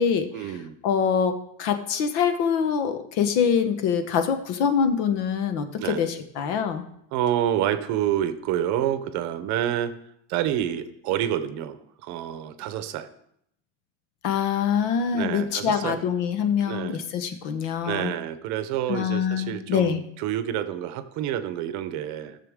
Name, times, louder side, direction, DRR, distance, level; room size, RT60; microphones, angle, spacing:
voice 1, 0.3-0.8 5.8-6.0 7.1-10.0 10.3-13.1 15.1-16.0 16.6-17.0 17.8-22.4, right 11 dB, 50° right, 12 dB, 0.7 m, -28 dB
voice 2, 0.8-6.8 14.2-18.1 18.9-20.0, left 7 dB, 70° left, 9 dB, 1.1 m, -24 dB
14.5 x 6.9 x 3.6 m, 0.74 s
cardioid pair, 160°, 37 cm